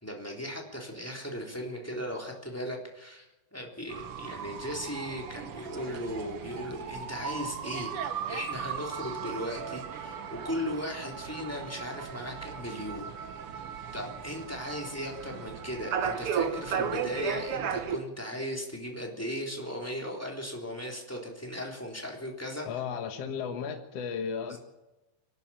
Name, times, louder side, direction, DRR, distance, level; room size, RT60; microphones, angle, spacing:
voice 1, 0.0-3.2 3.5-7.9 8.3-13.1 13.5-22.7 24.5-24.6, equal, 5° left, 0 dB, 3.0 m, -37 dB
sound 1, 3.9-18.0, right 7 dB, 90° right, 1.2 m, -36 dB
voice 2, 22.7-24.6, left 6 dB, 55° left, 4 dB, 1.9 m, -34 dB
25.5 x 12.0 x 8.9 m, 1.0 s
omnidirectional pair, 4.5 m